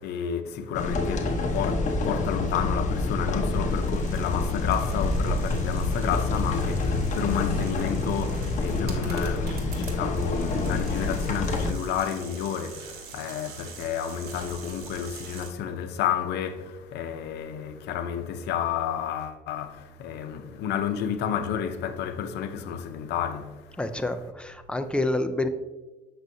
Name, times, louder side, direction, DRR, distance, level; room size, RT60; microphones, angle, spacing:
voice 1, 0.0-23.8, left 8 dB, 80° left, 0.7 m, -31 dB
sound 1, 0.7-11.7, left 2 dB, 45° left, 1.0 m, -27 dB
sound 2, 3.5-15.5, right 6 dB, 70° right, 1.5 m, -45 dB
voice 2, 23.8-25.5, left 2 dB, 5° left, 0.5 m, -28 dB
7.8 x 6.1 x 2.7 m
cardioid pair, 110°, 17 cm